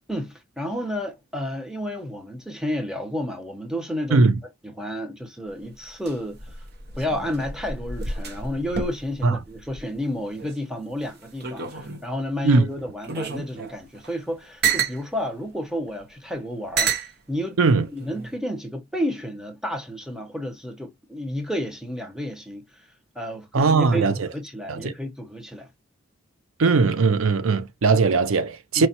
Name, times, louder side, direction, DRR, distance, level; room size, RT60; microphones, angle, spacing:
voice 1, 0.1-4.2 4.6-6.6 7.0-17.0 17.3-17.6 17.9-22.9 23.1-24.1 24.3-25.7 28.8-28.9, equal, 5° right, 0.9 m, -31 dB
sound 1, 5.5-10.6 10.9-12.2 12.8-15.0 15.9-16.0 16.8-17.1 18.0-18.4, right 6 dB, 50° right, 0.9 m, -30 dB
voice 2, 23.5-24.3 24.7-24.9 26.6-28.9, right 4 dB, 75° right, 0.5 m, -19 dB
4.5 x 3.1 x 2.8 m
head